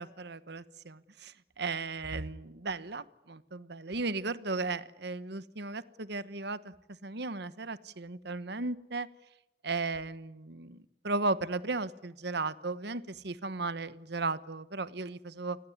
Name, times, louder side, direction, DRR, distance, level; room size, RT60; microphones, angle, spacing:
voice 1, 0.0-6.7 7.0-9.1 9.6-15.6, right 3 dB, 55° right, 16 dB, 1.2 m, -35 dB
28.5 x 20.0 x 9.5 m, 0.87 s
head